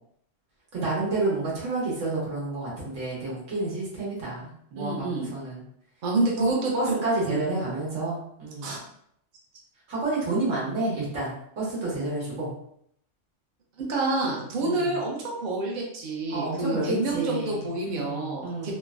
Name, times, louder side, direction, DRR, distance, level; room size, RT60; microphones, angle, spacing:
voice 1, 0.7-5.6 6.4-6.5 6.7-8.7 9.9-12.5 14.6-15.0 16.3-18.7, right 2 dB, 80° right, -6 dB, 1.5 m, -30 dB
voice 2, 4.8-5.3 6.0-7.4 8.6-8.8 13.9-18.7, right 2 dB, 50° right, -2 dB, 0.7 m, -28 dB
3.2 x 2.1 x 2.4 m, 0.70 s
omnidirectional pair, 1.3 m